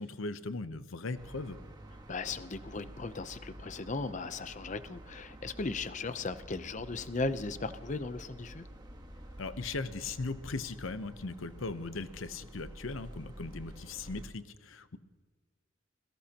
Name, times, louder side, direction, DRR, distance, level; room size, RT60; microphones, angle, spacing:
voice 1, 0.0-1.6 9.4-15.0, left 3 dB, 90° left, 12 dB, 0.8 m, -38 dB
sound 1, 1.1-14.3, right 1 dB, 20° right, 1.5 m, -49 dB
voice 2, 2.1-8.7, left 3 dB, 40° left, 12 dB, 0.7 m, -37 dB
28.0 x 17.0 x 2.9 m, 1.4 s
head